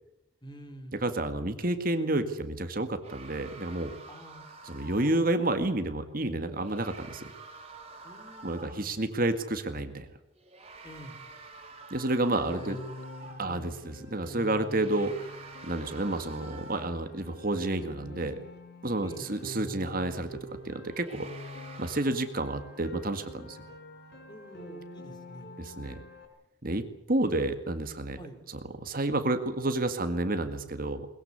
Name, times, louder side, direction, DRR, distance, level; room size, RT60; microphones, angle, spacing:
voice 1, 0.4-1.0 4.1-4.5 8.0-9.0 10.8-11.2 12.4-12.8 13.2-13.7 19.0-19.3 24.3-25.5 28.2-28.4, equal, 20° left, 8 dB, 3.5 m, -47 dB
voice 2, 1.0-3.9 4.7-7.3 8.4-10.1 11.9-12.8 13.4-15.3 15.6-18.4 18.8-21.3 21.8-23.6 25.6-26.0 26.6-28.2 28.8-31.1, right 2 dB, 45° right, 8 dB, 1.9 m, -30 dB
sound 1, 3.0-5.4 6.5-9.0 10.3-13.6 14.6-17.2 20.8-22.1, right 3 dB, 30° right, 4.6 m, -48 dB
Piano, 12.5-26.3, left 2 dB, 55° left, 5.0 m, -46 dB
22.0 x 21.0 x 8.3 m, 0.82 s
head